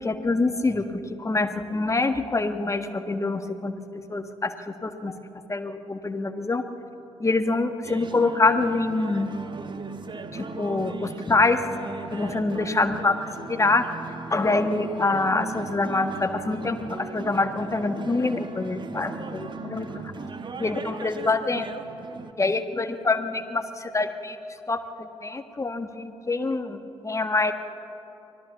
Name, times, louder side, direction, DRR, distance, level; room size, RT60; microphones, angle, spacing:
voice 1, 0.0-3.7 4.1-5.1 5.5-6.6 7.2-9.3 10.3-11.7 12.1-20.0 20.6-21.7 22.4-24.4 24.7-27.5, left 3 dB, 20° left, 8 dB, 1.5 m, -25 dB
sound 1, 7.8-22.3, right 4 dB, 35° right, 1.3 m, -37 dB
24.0 x 16.5 x 7.2 m, 2.9 s
figure-of-eight pair, 45°, 14 cm